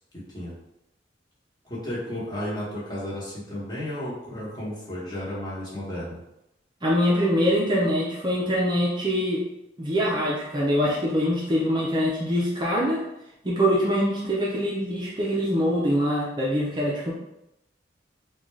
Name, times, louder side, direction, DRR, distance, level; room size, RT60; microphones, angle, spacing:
voice 1, 0.1-0.5 1.6-6.2, left 1 dB, 20° left, -7 dB, 1.1 m, -33 dB
voice 2, 6.8-9.4 9.8-13.0 13.4-17.1, equal, 25° right, -5 dB, 0.5 m, -24 dB
3.7 x 2.3 x 3.1 m, 0.87 s
head